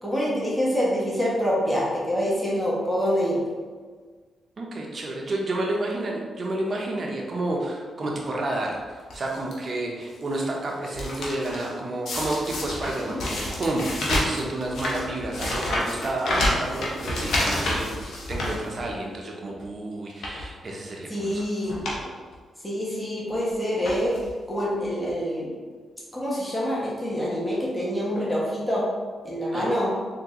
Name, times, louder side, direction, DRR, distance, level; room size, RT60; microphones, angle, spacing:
voice 1, 0.0-3.4 21.1-21.8 22.6-24.2 24.5-25.6 26.1-28.8 29.2-29.9, equal, 10° left, -6 dB, 1.1 m, -26 dB
voice 2, 4.6-17.9 18.3-21.4 21.7-22.1 29.5-29.8, right 2 dB, 50° right, -1 dB, 0.7 m, -30 dB
sound 1, 9.1-9.5 10.1-10.4 10.7-11.7 12.1-19.2 19.5-19.7 20.1-20.5 21.3-21.4 21.7-22.0 22.3-22.4 23.3-23.5 23.8-24.3 25.1-25.2 25.4-25.5, left 1 dB, 75° left, 0.7 m, -29 dB
3.5 x 2.6 x 2.9 m, 1.5 s
supercardioid pair, 50°, 0 cm